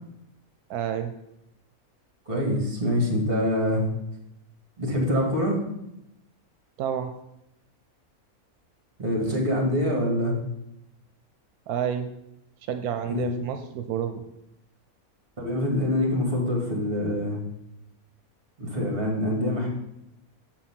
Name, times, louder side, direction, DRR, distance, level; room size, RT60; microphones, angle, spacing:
voice 1, 0.7-1.1 6.8-7.1 11.7-12.1 12.7-14.2, right 9 dB, 85° right, 8 dB, 1.1 m, -29 dB
voice 2, 2.3-3.8 4.8-5.6 9.0-10.4 13.1-13.3 15.4-17.4 18.6-19.7, left 1 dB, 40° right, 0 dB, 2.1 m, -25 dB
7.2 x 4.5 x 5.8 m, 0.84 s
omnidirectional pair, 1.6 m